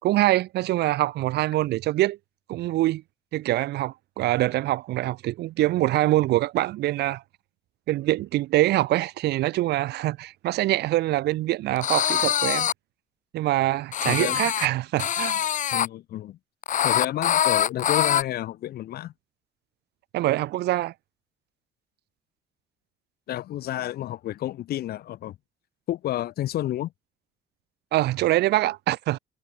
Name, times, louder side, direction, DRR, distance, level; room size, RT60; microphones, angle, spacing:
voice 1, 0.0-2.2 2.5-3.0 3.3-7.2 7.9-12.7 13.3-15.4 20.1-20.9 27.9-29.2, right 16 dB, 75° right, 3.0 m, -24 dB
sound 1, 11.8-12.7 13.9-14.7 15.0-15.9 16.6-18.2, left 10 dB, 50° left, 1.1 m, -24 dB
voice 2, 14.1-14.4 15.7-16.4 16.8-19.1 23.3-25.4 25.9-26.9, left 13 dB, 65° left, 2.1 m, -30 dB
cardioid pair, 110°, 17 cm